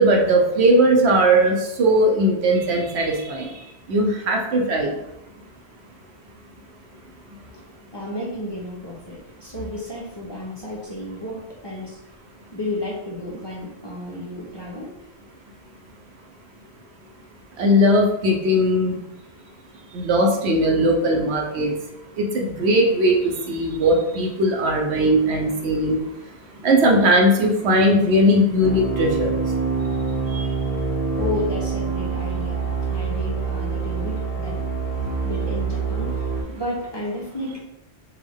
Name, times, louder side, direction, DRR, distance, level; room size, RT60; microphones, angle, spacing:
voice 1, 0.0-3.5 3.9-4.9 17.6-18.9 19.9-21.7 22.2-26.0 26.6-29.3 30.3-30.5, equal, 75° right, 1 dB, 0.9 m, -19 dB
voice 2, 7.9-12.0 12.5-14.9 31.2-34.6 35.2-37.6, left 1 dB, 25° left, -5 dB, 0.7 m, -32 dB
sound 1, 28.6-36.4, right 5 dB, 60° left, 1.1 m, -25 dB
3.6 x 2.4 x 3.4 m, 0.85 s
omnidirectional pair, 1.1 m